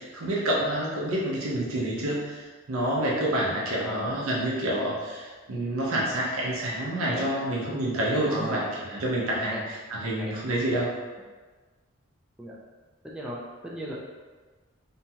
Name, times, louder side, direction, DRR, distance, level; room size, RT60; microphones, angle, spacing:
voice 1, 0.0-10.9, right 1 dB, 85° right, -4 dB, 0.6 m, -28 dB
voice 2, 3.8-4.2 7.0-7.3 8.3-8.7 9.4-9.6 10.2-10.3 12.4-12.5 13.0-13.9, equal, 5° right, -5 dB, 0.3 m, -35 dB
2.8 x 2.3 x 2.7 m, 1.3 s
head